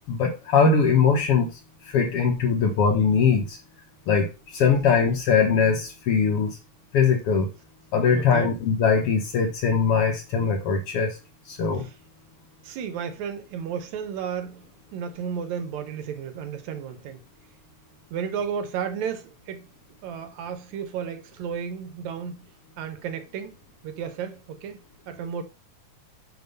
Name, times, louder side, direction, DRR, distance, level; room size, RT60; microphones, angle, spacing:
voice 1, 0.1-1.5 1.9-3.6 4.1-6.6 6.9-7.5 7.9-11.2 11.5-11.9, left 5 dB, 60° left, 1.7 m, -21 dB
voice 2, 8.2-8.5 11.8-11.9 12.6-17.2 18.1-19.7 20.0-22.5 22.8-23.5 23.8-24.8 25.1-25.4, right 7 dB, 75° right, 2.1 m, -33 dB
7.0 x 3.6 x 5.4 m
omnidirectional pair, 3.4 m